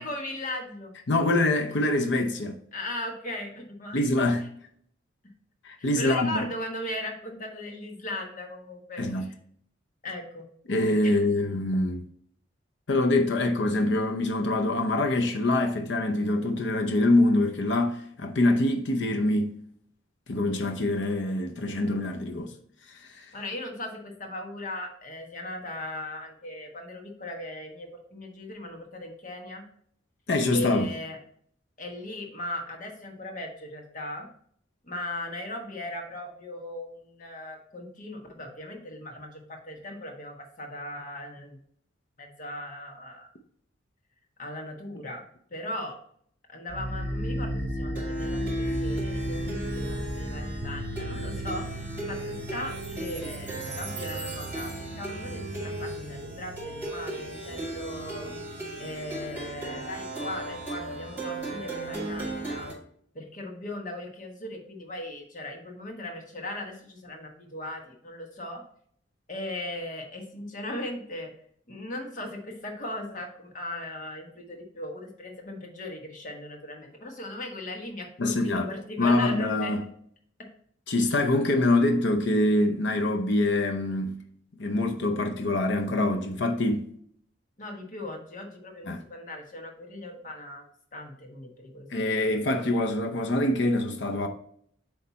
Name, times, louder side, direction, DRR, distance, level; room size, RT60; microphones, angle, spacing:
voice 1, 0.0-0.9 2.7-4.0 5.8-9.3 10.0-10.4 11.0-11.2 23.3-29.6 30.5-31.2 31.8-34.3 34.8-41.6 42.2-43.3 44.4-45.2 45.5-46.0 46.5-51.6 52.1-58.3 58.8-62.7 63.1-68.6 69.3-71.3 71.7-79.7 80.4-80.5 87.6-90.6 90.9-91.9, left 1 dB, 40° left, 1.3 m, -38 dB
voice 2, 1.1-2.6 3.9-4.4 5.6-6.4 9.0-9.3 10.7-12.0 12.9-19.6 20.3-22.5 22.9-23.3 30.3-30.9 78.2-78.7 79.0-79.8 80.9-84.2 84.6-86.8 88.9-89.0 91.9-94.3, left 2 dB, 65° left, 0.7 m, -25 dB
Plucked string instrument, 46.7-62.7, right 1 dB, 10° right, 2.4 m, -34 dB
sound 1, 50.6-56.9, right 1 dB, 40° right, 2.3 m, -44 dB
8.3 x 3.3 x 4.1 m
head